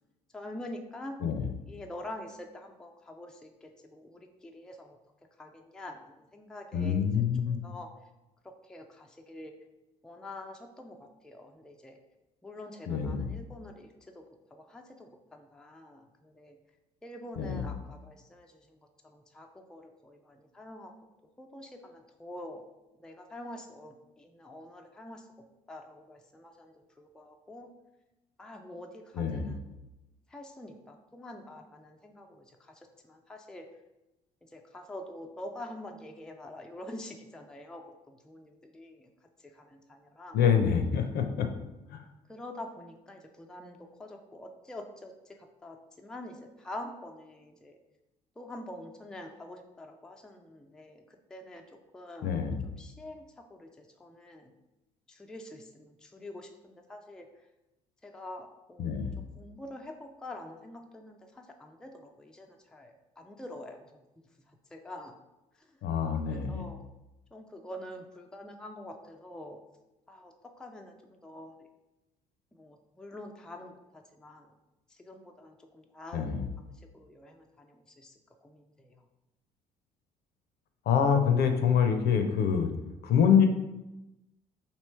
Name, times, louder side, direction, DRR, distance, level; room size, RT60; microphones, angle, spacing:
voice 1, 0.3-1.2 1.7-5.0 5.4-7.9 8.6-9.5 10.0-12.0 12.4-14.3 14.5-16.6 17.0-20.9 21.4-22.6 23.0-25.3 25.7-27.7 28.4-29.8 30.3-33.7 34.4-39.1 39.4-40.4 42.3-45.4 45.6-47.8 48.4-51.6 51.9-54.5 55.1-57.3 58.0-59.1 59.4-64.0 64.5-65.1 65.6-65.7 66.3-66.8 67.3-69.6 70.1-71.7 72.5-74.5 74.9-78.1 78.4-79.0, left 1 dB, 5° left, 3 dB, 0.4 m, -46 dB
voice 2, 6.7-7.7 12.9-13.3 17.4-17.7 29.1-29.5 40.3-41.5 41.9-42.0 52.2-52.6 58.8-59.2 65.8-66.6 76.1-76.5 80.9-82.7 83.0-83.5, left 7 dB, 50° left, 6 dB, 0.6 m, -26 dB
3.1 x 2.8 x 4.3 m, 0.98 s
figure-of-eight pair, 50°, 21 cm